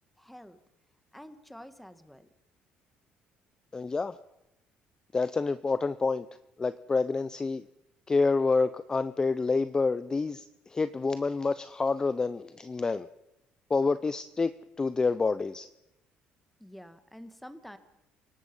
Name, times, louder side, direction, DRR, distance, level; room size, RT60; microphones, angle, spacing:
voice 1, 0.2-0.6 1.1-2.3 16.6-17.8, equal, 5° left, 10 dB, 1.8 m, -48 dB
voice 2, 3.7-4.2 5.1-6.3 6.6-7.6 8.1-10.4 10.7-13.1 13.7-14.5 14.8-15.7, left 4 dB, 20° left, 13 dB, 0.7 m, -28 dB
29.0 x 18.0 x 5.5 m, 0.87 s
cardioid pair, 110°, 3 cm